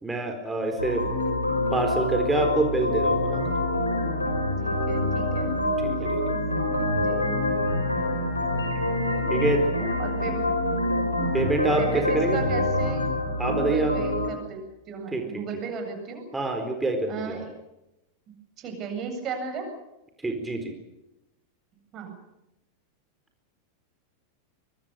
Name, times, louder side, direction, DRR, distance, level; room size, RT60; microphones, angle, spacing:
voice 1, 0.0-1.0 1.7-3.4 5.8-6.4 9.3-9.6 11.3-12.4 13.4-13.9 15.1-15.2 16.3-17.4 20.2-20.7, right 2 dB, 10° right, 4 dB, 4.2 m, -26 dB
sound 1, 0.8-14.3, left 1 dB, 85° left, 5.4 m, -26 dB
voice 2, 4.6-5.6 6.0-6.2 6.9-7.4 10.0-10.6 11.8-13.1 13.5-16.2 17.1-17.5 18.6-19.7 21.9-22.1, right 5 dB, 35° right, 5 dB, 8.0 m, -35 dB
24.0 x 23.5 x 6.9 m, 0.91 s
figure-of-eight pair, 90°, 0 cm